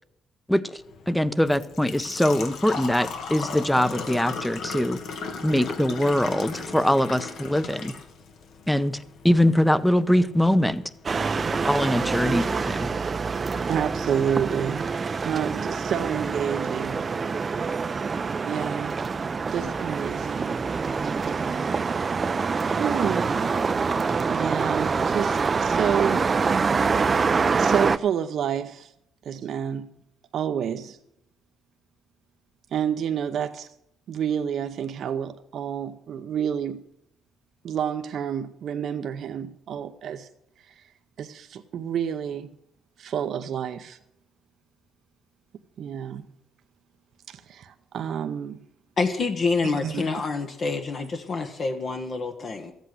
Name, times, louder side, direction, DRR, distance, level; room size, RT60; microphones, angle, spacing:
voice 1, 0.5-5.0 5.4-7.9 8.7-9.0 9.2-10.8 11.5-12.9, left 1 dB, 5° left, 0.8 m, -22 dB
Engine / Trickle dribble / Fill (with liquid), 0.8-12.7, left 4 dB, 75° left, 2.0 m, -37 dB
sound 1, 11.1-28.0, right 5 dB, 35° right, 0.5 m, -25 dB
voice 2, 13.7-14.9 15.2-17.0 18.4-19.0 19.5-20.6 22.6-23.5 24.3-26.2 27.6-28.9 29.2-29.9 30.3-31.0 32.7-33.7 34.1-36.8 37.6-40.3 40.7-40.8 41.2-42.5 43.0-44.0 45.8-46.2 47.3-48.6 49.6-50.1, right 8 dB, 65° right, 0.8 m, -29 dB
voice 3, 49.0-52.7, left 4 dB, 50° left, 1.3 m, -27 dB
14.0 x 8.2 x 7.8 m
cardioid pair, 90°, 0 cm